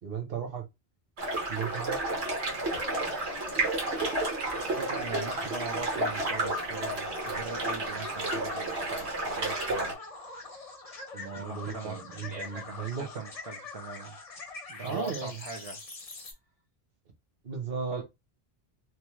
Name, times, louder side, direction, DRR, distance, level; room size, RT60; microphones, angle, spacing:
voice 1, 0.0-0.7 1.5-2.0 11.1-13.0 14.8-15.4 17.4-18.0, right 6 dB, 65° right, 1.1 m, -35 dB
sound 1, 1.2-9.9, right 2 dB, 85° right, 1.4 m, -31 dB
sound 2, 2.6-16.3, left 3 dB, 40° left, 0.8 m, -44 dB
voice 2, 4.6-9.9 11.3-14.2 14.7-15.8 17.9-18.0, right 4 dB, 45° right, 0.5 m, -41 dB
3.1 x 2.1 x 3.0 m
omnidirectional pair, 1.1 m